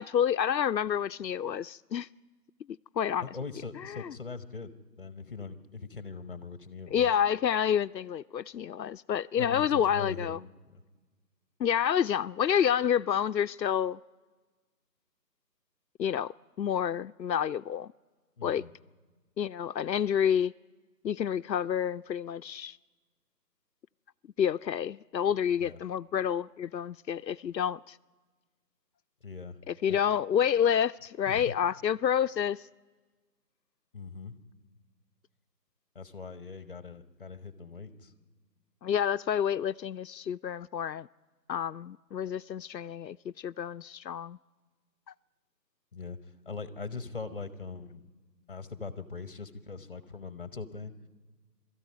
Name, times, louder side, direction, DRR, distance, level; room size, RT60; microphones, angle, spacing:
voice 1, 0.0-2.1 3.0-3.3 3.9-4.1 6.9-10.4 11.6-14.0 16.0-16.3 16.6-17.9 18.4-18.6 19.4-20.5 21.0-22.8 24.4-28.0 29.7-32.7 38.8-41.1 41.5-44.4, left 8 dB, 85° left, 0.6 m, -29 dB
voice 2, 3.2-7.1 9.4-10.4 10.7-10.8 18.4-18.7 25.6-25.8 29.2-29.6 29.9-30.2 31.3-31.5 33.9-34.4 35.9-38.1 45.9-48.0 48.5-50.9, left 4 dB, 35° left, 1.3 m, -41 dB
22.0 x 13.5 x 9.5 m
figure-of-eight pair, 165°, 49 cm